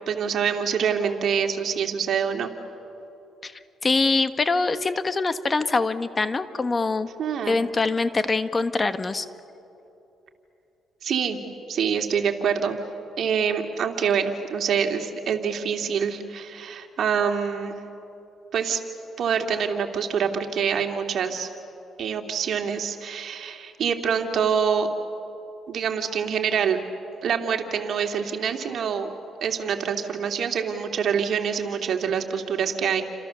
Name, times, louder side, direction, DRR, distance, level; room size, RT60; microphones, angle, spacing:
voice 1, 0.1-2.5 7.2-7.6 11.0-11.4 11.7-12.8 13.2-17.8 18.5-18.8 19.2-21.5 22.0-24.9 25.7-26.8 27.2-29.1 29.4-33.0, right 7 dB, 65° right, 4 dB, 2.5 m, -25 dB
voice 2, 3.8-7.1 7.5-9.2, left 3 dB, 30° left, 11 dB, 1.3 m, -24 dB
29.0 x 27.0 x 7.0 m, 2.9 s
cardioid pair, 90°, 0 cm